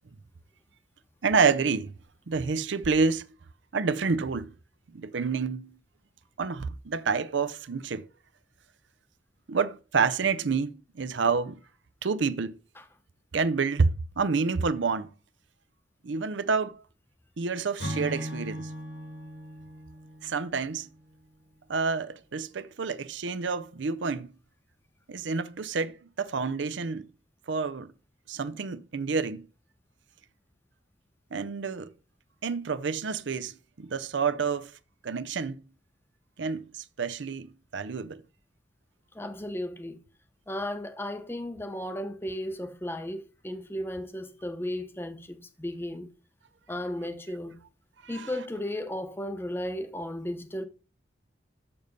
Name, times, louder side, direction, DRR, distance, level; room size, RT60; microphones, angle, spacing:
voice 1, 1.2-1.9 2.3-3.2 3.7-4.5 4.9-5.8 6.4-8.1 9.5-11.6 12.0-12.5 13.3-15.1 16.0-16.8 17.4-18.7 20.2-20.9 21.7-24.3 25.1-27.1 27.5-27.9 28.3-29.5 31.3-31.9 32.4-33.5 33.8-34.7 35.0-35.6 36.4-38.2 48.0-48.3, right 5 dB, 85° right, 0.6 m, -28 dB
Acoustic guitar / Strum, 17.8-21.2, equal, 85° left, 3.2 m, -38 dB
voice 2, 39.1-40.0 40.5-46.1 46.7-47.6 48.1-50.6, left 1 dB, 10° left, 0.8 m, -35 dB
7.0 x 6.6 x 5.3 m
head